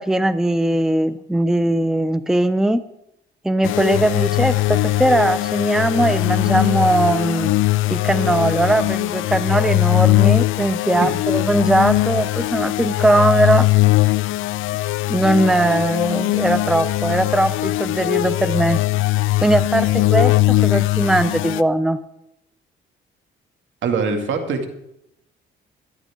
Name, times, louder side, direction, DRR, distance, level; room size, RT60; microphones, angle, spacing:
voice 1, 0.0-2.8 3.4-7.5 7.9-13.7 15.1-18.8 19.4-22.0, right 1 dB, 5° right, 14 dB, 0.5 m, -19 dB
sound 1, 3.6-21.6, left 18 dB, 80° left, 0.4 m, -20 dB
voice 2, 23.8-24.7, right 4 dB, 70° right, 5 dB, 2.4 m, -22 dB
17.5 x 12.5 x 3.7 m, 0.82 s
cardioid pair, 90°, 20 cm